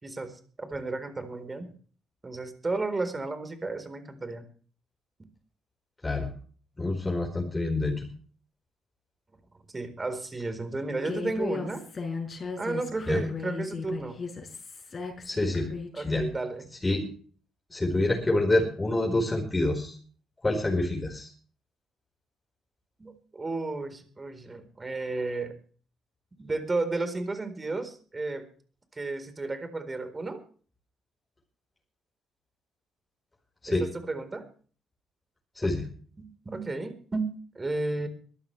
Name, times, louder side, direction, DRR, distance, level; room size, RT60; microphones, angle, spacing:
voice 1, 0.0-1.7 2.2-4.5 9.7-11.8 12.6-14.2 15.9-16.7 23.0-25.5 26.4-28.5 28.9-30.4 33.7-34.4 35.6-35.7 36.2-38.1, right 3 dB, 25° right, 9 dB, 4.1 m, -33 dB
voice 2, 6.8-8.1 13.1-13.2 15.2-15.7 16.0-16.2 16.8-17.0 17.7-20.0 20.4-21.3 33.6-33.8 35.5-35.9, left 2 dB, 20° left, 0 dB, 4.8 m, -26 dB
Human voice, 11.0-16.3, left 4 dB, 40° left, 5.2 m, -36 dB
22.5 x 12.5 x 3.3 m, 0.43 s
figure-of-eight pair, 45°, 0 cm